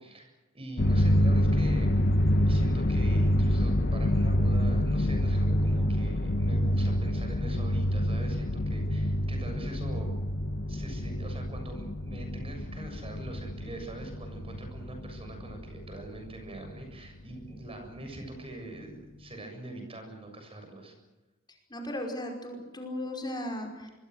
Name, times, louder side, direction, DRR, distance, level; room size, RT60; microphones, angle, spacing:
voice 1, 0.0-2.0 2.5-10.1 10.7-20.9, right 2 dB, 30° right, 4 dB, 7.4 m, -43 dB
sound 1, 0.8-16.8, equal, 50° left, 1.3 m, -27 dB
voice 2, 21.7-23.9, left 1 dB, 20° left, 2 dB, 5.3 m, -36 dB
25.5 x 23.5 x 6.5 m, 1.1 s
head